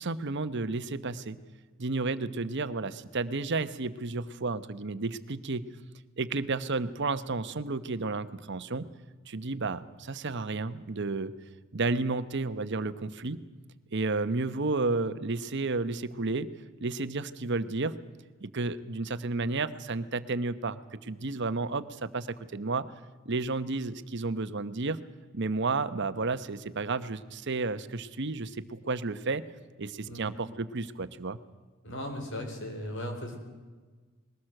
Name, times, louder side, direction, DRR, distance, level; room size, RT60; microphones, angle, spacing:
voice 1, 0.0-1.4 1.8-5.6 6.2-8.9 9.3-11.3 11.7-13.4 13.9-16.5 16.8-17.9 18.4-22.8 23.2-25.0 25.3-29.4 29.8-31.4, right 3 dB, 55° right, 12 dB, 1.0 m, -32 dB
voice 2, 31.8-33.4, left 1 dB, 60° left, 4 dB, 4.5 m, -37 dB
21.0 x 18.0 x 7.8 m, 1.4 s
head